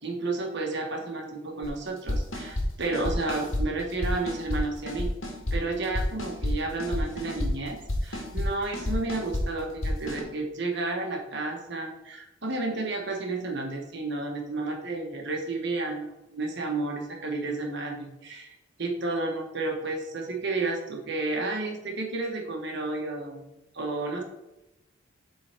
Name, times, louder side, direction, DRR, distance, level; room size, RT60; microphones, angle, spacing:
voice 1, 0.0-5.1 5.5-23.4 23.7-24.2, right 3 dB, 55° right, 2 dB, 1.3 m, -31 dB
sound 1, 1.6-1.7 2.1-2.7 2.9-3.6 3.9-4.6 4.9-5.6 5.8-7.5 7.9-8.5 8.7-9.4 9.8-10.2, left 1 dB, 75° left, 1.8 m, -30 dB
7.6 x 3.9 x 4.5 m, 0.95 s
head